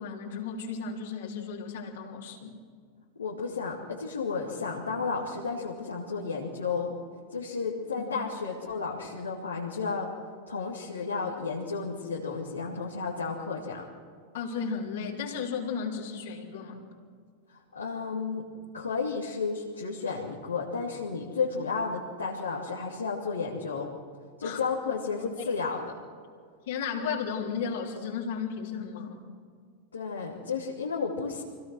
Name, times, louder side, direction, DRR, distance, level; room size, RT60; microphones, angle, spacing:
voice 1, 0.0-2.6 8.0-8.1 14.3-16.8 24.4-24.6 25.4-25.5 26.7-29.2, left 6 dB, 65° left, -1 dB, 3.4 m, -34 dB
voice 2, 3.2-6.9 7.3-10.1 10.5-13.8 17.7-18.5 18.7-23.9 24.4-25.8 29.9-31.4, left 5 dB, 85° left, -3 dB, 2.5 m, -32 dB
25.0 x 17.0 x 6.3 m, 2.1 s
hypercardioid pair, 95°, 0 cm